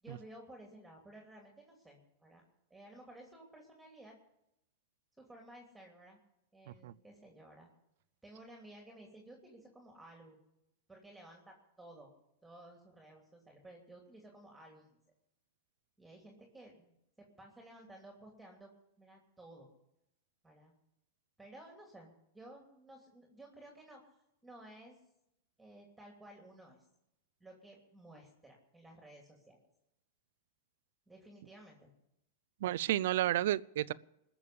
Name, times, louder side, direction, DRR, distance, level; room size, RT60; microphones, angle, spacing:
voice 1, 0.0-4.1 5.2-6.2 6.5-7.7 8.2-10.4 10.9-12.1 12.4-15.0 16.0-16.9 17.4-18.7 19.0-19.7 20.4-20.7 21.4-24.0 24.4-24.9 25.6-26.8 27.4-29.6 31.1-31.9, right 1 dB, 5° right, 1 dB, 2.9 m, -55 dB
voice 2, 32.6-33.9, right 13 dB, 70° right, 18 dB, 0.5 m, -32 dB
20.0 x 7.0 x 8.6 m, 0.83 s
hypercardioid pair, 130°, 0 cm